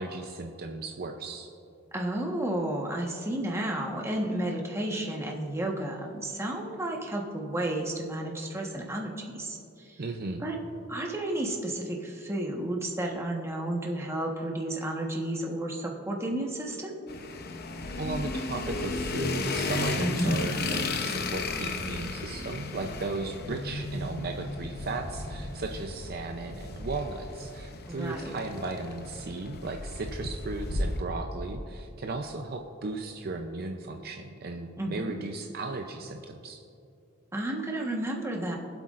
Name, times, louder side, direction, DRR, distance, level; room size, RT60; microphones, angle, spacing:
voice 1, 0.0-1.5 10.0-10.5 18.0-36.6, right 3 dB, 50° right, 4 dB, 0.6 m, -36 dB
voice 2, 1.9-10.0 10.4-10.6 10.9-17.0 20.0-20.3 27.9-28.3 34.8-35.1 37.3-38.6, right 1 dB, 15° right, -1 dB, 1.3 m, -32 dB
sound 1, 17.1-31.0, left 2 dB, 50° left, 0.8 m, -34 dB
23.5 x 8.0 x 2.5 m, 2.6 s
head